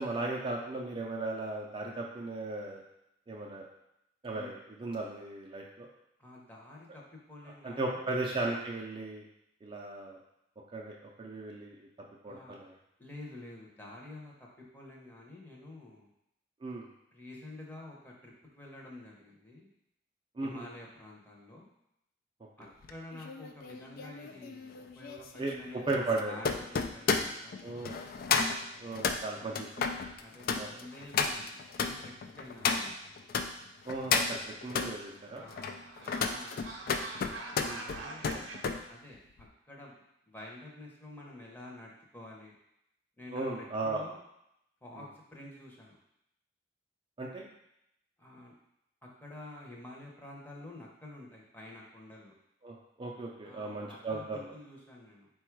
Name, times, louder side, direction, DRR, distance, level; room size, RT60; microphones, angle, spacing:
voice 1, 0.0-2.8 3.3-3.6 4.2-5.9 7.6-9.2 9.6-10.2 10.7-11.8 12.2-12.8 16.6-16.9 20.4-20.7 22.6-22.7 25.4-26.4 27.6-28.0 28.8-29.9 30.6-30.7 33.9-35.4 37.6-37.9 43.3-44.0 45.0-45.1 47.2-47.5 52.6-54.5, right 2 dB, 30° right, -2 dB, 0.4 m, -36 dB
voice 2, 6.2-7.0 7.3-8.1 12.3-12.6 13.0-14.5 14.7-16.1 17.1-19.7 20.4-21.7 22.6-28.2 29.1-29.6 30.2-33.1 35.3-37.0 37.7-38.5 38.9-40.0 40.3-42.5 43.2-44.2 44.8-46.0 48.2-48.5 49.0-52.3 53.4-55.3, left 1 dB, 10° left, -2 dB, 0.7 m, -49 dB
sound 1, 22.8-33.5 33.9-34.9 35.4-38.8 39.1-39.5, left 5 dB, 50° left, 0.3 m, -33 dB
sound 2, 34.9-38.6, right 3 dB, 85° right, 0.6 m, -45 dB
4.2 x 2.3 x 4.5 m, 0.81 s
head